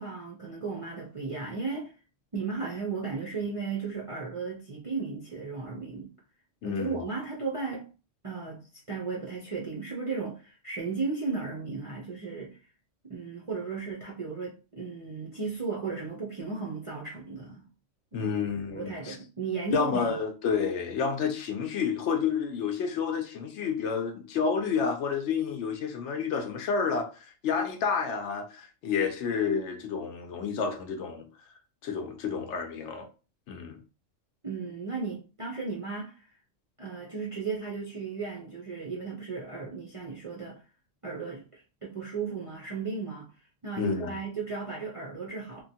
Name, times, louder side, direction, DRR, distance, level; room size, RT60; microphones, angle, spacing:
voice 1, 0.0-1.9 2.3-6.1 6.6-7.9 8.2-12.6 13.0-17.6 18.1-18.3 18.7-20.2 34.4-36.3 36.8-40.6 41.0-43.3 43.6-45.6, right 4 dB, 40° right, 0.4 m, -35 dB
voice 2, 6.6-7.0 18.1-19.2 19.7-27.1 27.4-31.3 31.8-33.1 33.5-33.8 43.8-44.1, left 6 dB, 70° left, 0.8 m, -30 dB
3.0 x 2.2 x 2.7 m
omnidirectional pair, 1.3 m